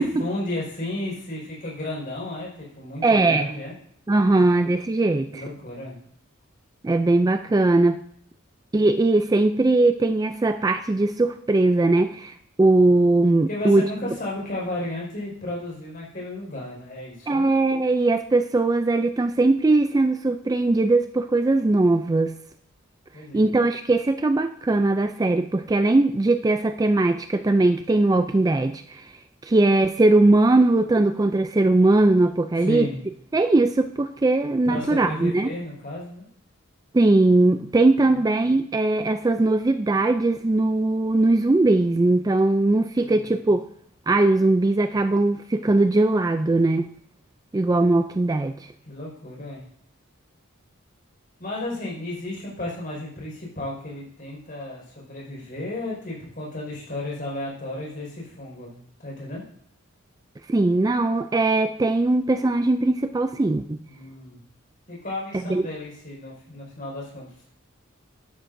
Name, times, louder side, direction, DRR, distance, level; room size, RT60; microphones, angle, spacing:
voice 1, 0.0-3.7 5.3-6.0 13.5-17.4 23.1-23.4 32.6-33.0 34.6-36.3 38.0-38.2 43.0-43.3 48.8-49.6 51.4-58.7 59.0-59.4 63.8-64.4 64.9-67.3, left 1 dB, 45° left, -4 dB, 5.0 m, -33 dB
voice 2, 3.0-3.5 4.1-5.4 6.8-8.0 8.7-13.8 17.3-22.3 23.3-29.1 29.4-32.9 33.3-35.5 36.9-43.6 44.1-46.9 47.5-48.5 60.5-63.8 65.4-65.6, right 2 dB, 20° right, 9 dB, 0.3 m, -20 dB
12.5 x 11.0 x 2.6 m, 0.64 s
head